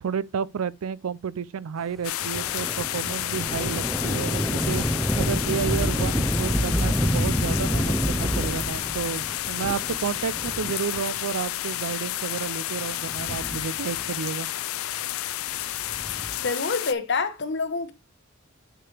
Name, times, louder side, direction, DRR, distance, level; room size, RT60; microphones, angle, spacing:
voice 1, 0.0-4.8 5.2-14.5, right 7 dB, 85° right, 0.4 m, -31 dB
sound 1, 2.0-16.9, left 14 dB, 80° left, 0.4 m, -31 dB
Thunder / Rain, 2.2-11.2 11.9-12.0 12.9-14.2 15.7-16.5, equal, ahead, 0.5 m, -28 dB
voice 2, 16.4-17.9, left 4 dB, 55° left, 1.0 m, -27 dB
8.8 x 4.9 x 3.2 m
head